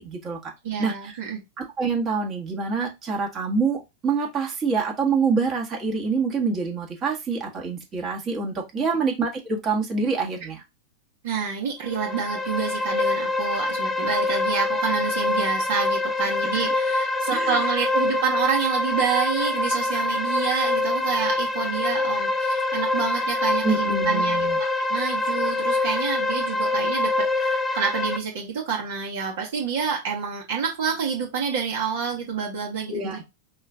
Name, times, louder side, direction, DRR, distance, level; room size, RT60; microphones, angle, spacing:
voice 1, 0.0-0.5 0.8-1.1 1.6-10.6 17.3-17.5 23.6-24.6 32.9-33.2, right 4 dB, 25° right, 1.5 m, -26 dB
voice 2, 0.6-1.4 8.7-8.8 11.2-33.2, right 6 dB, 55° right, 1.4 m, -28 dB
sound 1, 11.8-28.2, left 2 dB, 10° left, 0.7 m, -25 dB
5.4 x 2.6 x 3.5 m
figure-of-eight pair, 90°, 0 cm